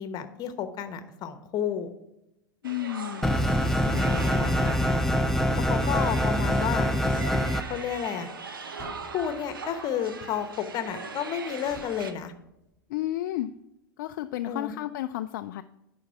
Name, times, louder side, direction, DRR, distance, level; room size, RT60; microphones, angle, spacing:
voice 1, 0.0-1.9 3.8-5.0 5.6-6.9 7.7-8.3 9.1-12.3 14.4-14.7, left 8 dB, 35° left, 11 dB, 1.0 m, -32 dB
voice 2, 2.6-3.4 12.9-13.5 14.0-15.6, left 14 dB, 55° left, 10 dB, 0.4 m, -32 dB
sound 1, 2.6-12.1, right 4 dB, 75° right, 0.9 m, -40 dB
sound 2, 3.2-7.6, equal, 5° left, 0.6 m, -24 dB
sound 3, 8.8-11.0 11.7-13.0, right 1 dB, 20° right, 3.9 m, -49 dB
11.0 x 4.6 x 5.7 m, 0.90 s
figure-of-eight pair, 90°, 11 cm